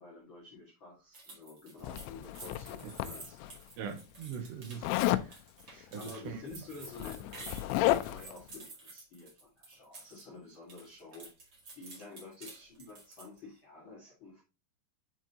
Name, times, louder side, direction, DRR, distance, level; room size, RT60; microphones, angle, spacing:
voice 1, 0.0-3.6 5.6-14.4, left 3 dB, 70° left, 1.1 m, -50 dB
sound 1, 1.1-10.2 10.5-13.4, right 3 dB, 45° right, 1.4 m, -51 dB
Zipper (clothing), 1.8-3.5 4.8-5.3 6.5-6.6 6.9-8.3, left 15 dB, 90° left, 2.9 m, -32 dB
voice 2, 3.8-5.4 5.9-6.4, right 6 dB, 80° right, 3.1 m, -42 dB
8.3 x 4.5 x 2.8 m
omnidirectional pair, 5.2 m